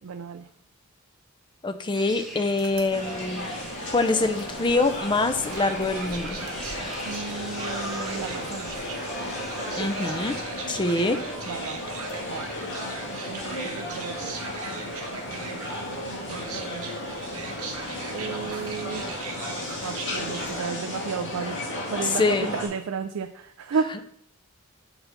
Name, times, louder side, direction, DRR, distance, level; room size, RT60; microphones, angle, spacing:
voice 1, 0.0-0.5 7.1-8.9 9.8-9.9 11.5-11.8 12.3-12.5 13.3-14.4 15.3-15.7 16.0-16.9 18.1-19.2 19.8-24.0, right 5 dB, 65° right, 7 dB, 0.4 m, -33 dB
voice 2, 1.6-3.5 3.9-6.5 9.7-10.4 10.7-11.2 22.0-22.5, left 3 dB, 20° left, 10 dB, 0.5 m, -25 dB
sound 1, 1.9-10.4, right 1 dB, ahead, 1.1 m, -43 dB
sound 2, 2.6-20.6, right 5 dB, 90° right, 1.1 m, -40 dB
sound 3, 2.9-22.7, left 1 dB, 55° left, 1.8 m, -34 dB
6.9 x 4.0 x 5.7 m, 0.68 s
head